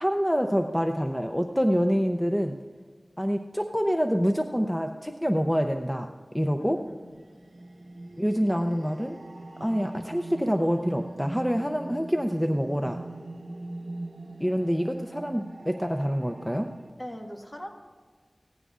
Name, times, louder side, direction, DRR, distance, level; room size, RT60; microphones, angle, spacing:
voice 1, 0.0-2.6 3.2-6.8 8.2-9.2 9.6-13.0 14.4-16.7, equal, 5° left, 5 dB, 0.6 m, -26 dB
voice 2, 6.6-7.2 14.3-14.8 17.0-17.7, equal, 35° left, 1 dB, 1.8 m, -42 dB
sound 1, 6.7-16.9, right 2 dB, 70° right, 1.0 m, -41 dB
18.0 x 14.5 x 2.5 m, 1.5 s
wide cardioid pair, 60°, 0 cm